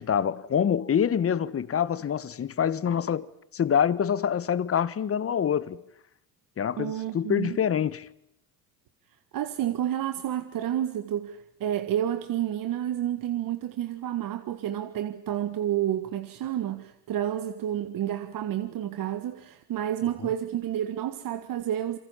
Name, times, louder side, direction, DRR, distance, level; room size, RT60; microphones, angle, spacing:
voice 1, 0.0-5.8 6.6-8.1, left 8 dB, 35° left, 1.4 m, -26 dB
voice 2, 6.8-7.6 9.3-22.0, right 11 dB, 55° right, 1.8 m, -30 dB
28.0 x 24.0 x 7.3 m
supercardioid pair, 90°, 41 cm